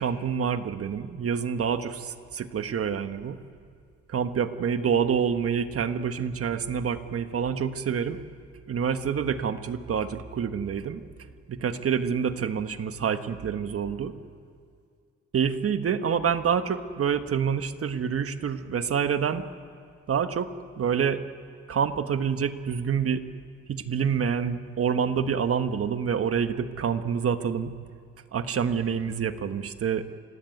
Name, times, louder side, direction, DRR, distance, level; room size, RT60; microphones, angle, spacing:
voice 1, 0.0-3.4 4.1-8.2 8.7-11.0 11.5-14.1 15.3-19.5 20.1-20.5 20.8-21.2 21.7-23.2 23.7-27.7 28.3-30.0, right 7 dB, 50° right, 9 dB, 1.4 m, -27 dB
28.5 x 16.0 x 9.3 m, 2.2 s
cardioid pair, 90°, 30 cm